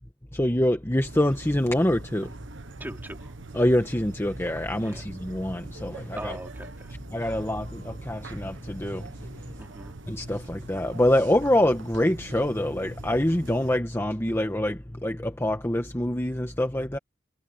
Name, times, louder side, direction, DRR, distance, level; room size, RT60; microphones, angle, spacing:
voice 1, 0.3-2.3 3.5-6.4 7.1-9.1 10.1-17.0, left 1 dB, 15° left, 1.3 m, -25 dB
sound 1, 1.0-13.8, right 2 dB, 70° right, 1.2 m, -43 dB
voice 2, 2.8-3.3 4.8-5.1 6.2-6.9 9.6-9.9, right 1 dB, 10° right, 4.3 m, -40 dB
head